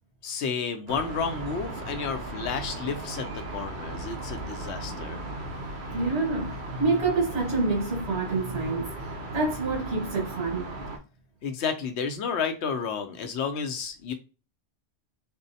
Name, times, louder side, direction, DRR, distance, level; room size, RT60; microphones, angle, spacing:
voice 1, 0.2-5.2 11.4-14.1, left 5 dB, 85° left, 0.9 m, -31 dB
sound 1, 0.9-11.0, right 2 dB, 55° right, 0.7 m, -37 dB
voice 2, 5.9-8.9 9.3-10.7, right 3 dB, 75° right, 1.4 m, -27 dB
4.4 x 2.0 x 2.7 m
omnidirectional pair, 1.1 m